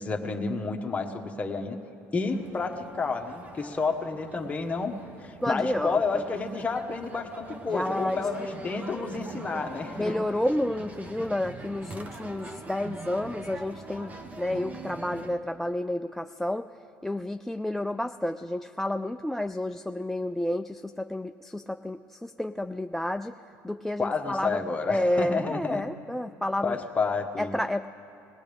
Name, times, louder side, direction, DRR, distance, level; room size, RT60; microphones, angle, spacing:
voice 1, 0.0-1.8 2.1-10.2 24.0-25.8 26.6-27.5, left 4 dB, 20° left, 2 dB, 1.3 m, -30 dB
sound 1, 2.3-15.4, right 2 dB, 25° right, 1.1 m, -43 dB
voice 2, 5.4-6.2 7.7-8.3 10.0-16.7 17.0-23.4 23.6-24.6 24.9-26.8 27.4-27.9, left 1 dB, 5° left, 11 dB, 0.3 m, -30 dB
21.0 x 17.5 x 3.5 m, 3.0 s
supercardioid pair, 100°, 6 cm